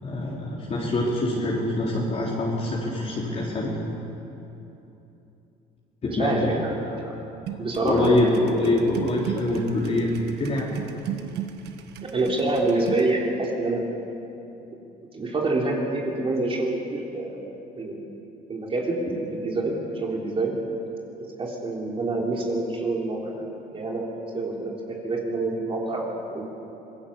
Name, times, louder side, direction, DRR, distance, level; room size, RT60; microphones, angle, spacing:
voice 1, 0.0-3.8 6.0-6.5 7.8-10.1 10.4-10.7, left 2 dB, 40° left, -6 dB, 3.9 m, -24 dB
voice 2, 6.1-7.2 7.6-8.8 12.0-13.8 15.1-17.4 17.8-18.1 18.5-19.0 19.4-20.5 21.4-23.3 23.7-24.0 24.3-26.4, right 2 dB, 35° right, -1 dB, 3.4 m, -27 dB
sound 1, 7.5-13.1, right 9 dB, 80° right, 1.5 m, -36 dB
26.0 x 18.0 x 7.1 m, 3.0 s
cardioid pair, 110°, 17 cm